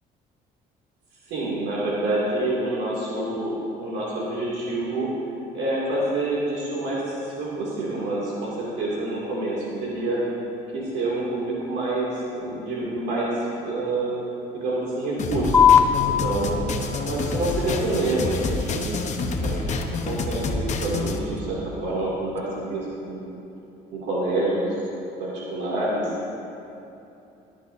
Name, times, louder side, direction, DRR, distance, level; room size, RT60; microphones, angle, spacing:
voice 1, 1.3-5.1 5.5-10.2 10.7-14.1 14.5-16.7 17.1-19.0 19.4-19.7 20.0-23.3 23.9-24.7 25.2-26.0, right 2 dB, 85° right, -6 dB, 2.7 m, -27 dB
sound 1, 15.2-21.2, left 3 dB, 45° left, 1.0 m, -28 dB
sound 2, 15.5-22.5, left 8 dB, 15° left, 0.7 m, -25 dB
20.0 x 10.0 x 2.8 m, 2.8 s
cardioid pair, 110°, 17 cm